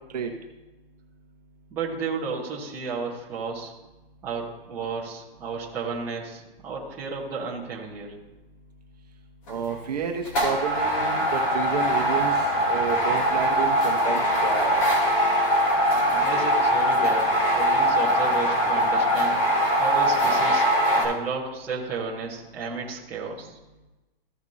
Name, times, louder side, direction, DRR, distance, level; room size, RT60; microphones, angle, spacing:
voice 1, 1.7-3.7 4.2-8.2 15.7-15.8 16.1-19.4 19.8-20.6 21.0-23.6, right 5 dB, 5° right, -6 dB, 0.9 m, -33 dB
sound 1, 9.5-9.8 10.2-21.0, equal, 35° left, 2.6 m, -22 dB
voice 2, 9.5-14.7, right 6 dB, 45° right, 3 dB, 0.9 m, -30 dB
14.5 x 6.1 x 2.7 m, 1.1 s
hypercardioid pair, 175°, 29 cm